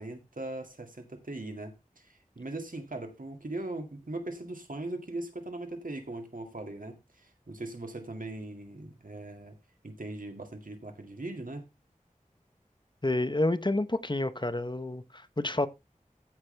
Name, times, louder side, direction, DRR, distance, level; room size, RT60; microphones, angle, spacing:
voice 1, 0.0-9.5 9.8-11.6, right 2 dB, 75° right, 2.2 m, -40 dB
voice 2, 13.0-15.7, left 2 dB, 35° left, 0.8 m, -29 dB
14.5 x 6.2 x 3.3 m
wide cardioid pair, 40°, 14 cm